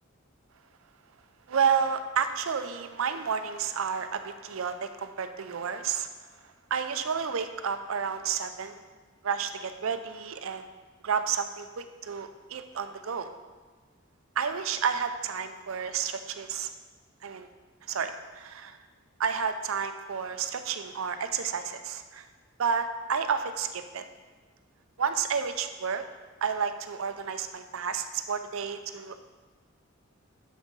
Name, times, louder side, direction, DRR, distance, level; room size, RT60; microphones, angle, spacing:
voice 1, 1.5-6.1 6.7-8.8 9.2-10.7 11.0-13.3 14.4-16.7 17.2-17.5 17.9-18.8 19.2-22.3 22.6-24.0 25.0-26.0 26.4-29.2, right 6 dB, 75° right, 9 dB, 0.5 m, -31 dB
6.3 x 6.2 x 5.4 m, 1.4 s
head